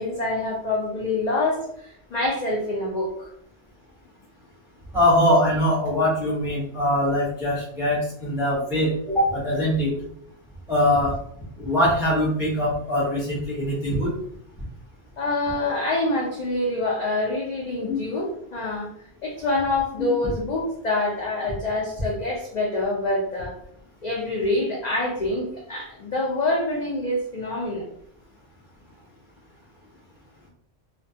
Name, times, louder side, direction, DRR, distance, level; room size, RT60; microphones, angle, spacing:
voice 1, 0.0-3.3 15.2-18.9 19.2-23.6 24.0-27.8, left 2 dB, 55° left, -2 dB, 0.5 m, -26 dB
voice 2, 4.9-9.9 10.7-11.1 11.6-14.1 17.9-18.0, left 1 dB, 5° right, -8 dB, 0.5 m, -22 dB
2.2 x 2.2 x 2.6 m, 0.69 s
omnidirectional pair, 1.1 m